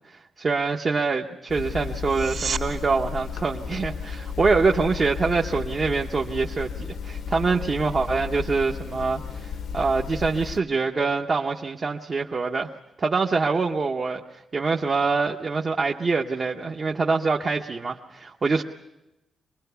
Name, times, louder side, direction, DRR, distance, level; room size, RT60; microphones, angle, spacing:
voice 1, 0.1-12.7 13.0-18.6, right 4 dB, 30° right, 2 dB, 0.8 m, -25 dB
sound 1, 1.5-10.6, left 6 dB, 75° left, 1.1 m, -34 dB
sound 2, 2.0-2.7 14.0-14.1, right 6 dB, 50° right, 2.3 m, -30 dB
25.0 x 20.5 x 6.8 m, 0.95 s
wide cardioid pair, 175°, 0 cm